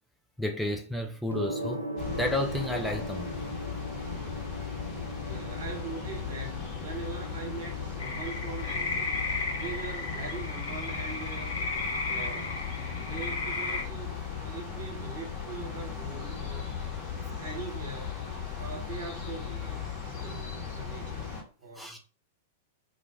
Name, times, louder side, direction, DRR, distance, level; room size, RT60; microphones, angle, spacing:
voice 1, 0.4-3.3 21.8-22.0, left 1 dB, ahead, 0.3 m, -32 dB
Gong, 1.3-20.3, right 1 dB, 85° right, 0.4 m, -43 dB
sound 1, 2.0-21.4, left 7 dB, 35° left, 1.1 m, -37 dB
voice 2, 5.2-11.6 12.1-12.6 12.9-18.2 18.5-19.8 20.2-21.3 21.6-22.0, right 4 dB, 60° right, 1.0 m, -42 dB
sound 2, 8.0-13.8, left 3 dB, 65° left, 0.7 m, -34 dB
2.3 x 2.1 x 3.1 m
figure-of-eight pair, 95°, 0 cm